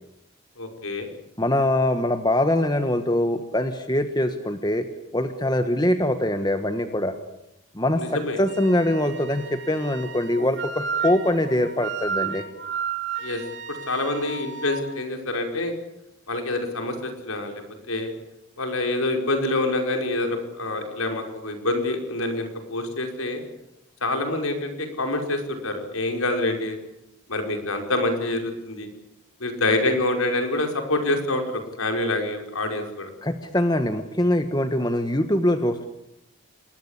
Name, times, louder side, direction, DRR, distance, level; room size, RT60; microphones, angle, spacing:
voice 1, 0.6-1.1 8.0-8.4 13.2-13.4 13.7-15.7 16.3-17.6 17.9-18.1 18.6-23.4 24.0-26.8 27.3-28.9 29.4-33.1, left 2 dB, 90° left, 5 dB, 5.4 m, -26 dB
voice 2, 1.4-4.8 5.1-7.1 7.7-8.0 8.4-12.4 33.2-35.9, left 1 dB, 20° left, 8 dB, 1.3 m, -23 dB
Wind instrument woodwind instrument, 8.5-14.8, right 6 dB, 55° right, 4.3 m, -33 dB
28.0 x 21.0 x 8.3 m, 0.83 s
head